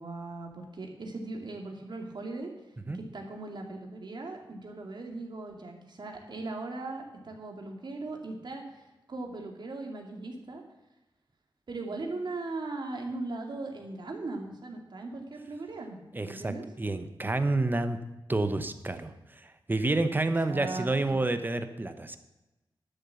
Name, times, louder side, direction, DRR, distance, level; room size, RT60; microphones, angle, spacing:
voice 1, 0.0-2.5 3.1-8.8 9.1-10.6 11.7-16.0 16.2-16.6 20.2-21.2, right 2 dB, 55° right, 2 dB, 2.3 m, -38 dB
voice 2, 16.1-18.0 18.3-22.2, right 2 dB, 20° right, 9 dB, 0.9 m, -29 dB
11.5 x 7.3 x 7.0 m, 1.0 s
wide cardioid pair, 120°, 9 cm